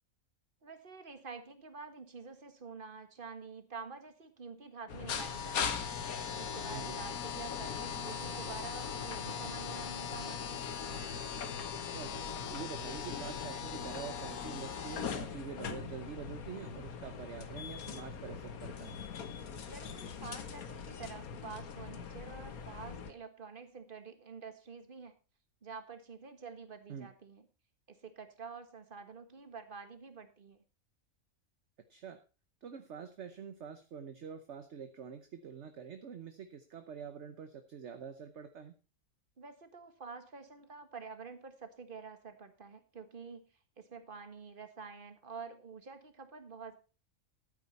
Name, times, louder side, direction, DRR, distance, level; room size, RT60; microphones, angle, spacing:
voice 1, 0.6-5.9 6.4-10.7 19.7-25.1 25.6-27.4 27.9-30.6 39.4-43.5 43.8-46.7, right 5 dB, 40° right, 8 dB, 1.7 m, -48 dB
sound 1, 4.9-23.1, left 7 dB, 90° left, 1.6 m, -40 dB
voice 2, 11.7-12.1 12.5-19.0 26.9-27.1 31.9-32.2 32.6-38.7, right 7 dB, 55° right, 9 dB, 1.2 m, -46 dB
13.0 x 9.1 x 4.2 m, 0.34 s
omnidirectional pair, 1.5 m